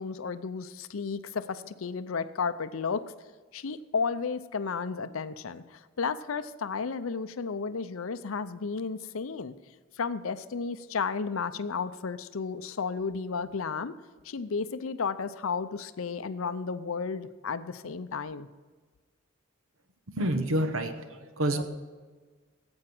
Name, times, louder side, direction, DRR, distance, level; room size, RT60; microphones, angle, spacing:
voice 1, 0.0-3.0 3.5-9.5 10.0-13.9 14.2-18.5, left 5 dB, 80° left, 12 dB, 0.6 m, -33 dB
voice 2, 20.1-21.6, right 1 dB, 80° right, 8 dB, 1.0 m, -28 dB
15.0 x 8.7 x 6.0 m, 1.4 s
head